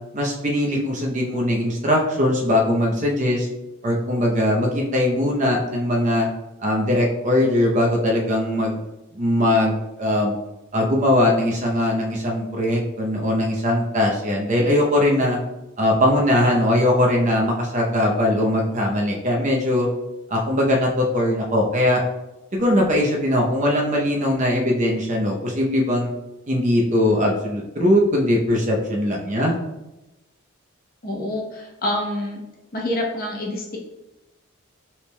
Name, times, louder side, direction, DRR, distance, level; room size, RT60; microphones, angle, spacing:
voice 1, 0.1-3.5 3.8-6.3 6.6-8.8 9.1-10.4 10.7-15.4 15.8-19.9 20.3-22.0 22.5-26.1 26.5-29.6, left 1 dB, 35° right, 0 dB, 0.7 m, -20 dB
voice 2, 31.0-32.4 32.7-33.8, left 1 dB, 45° left, -2 dB, 0.9 m, -27 dB
5.6 x 3.4 x 2.2 m, 0.99 s
head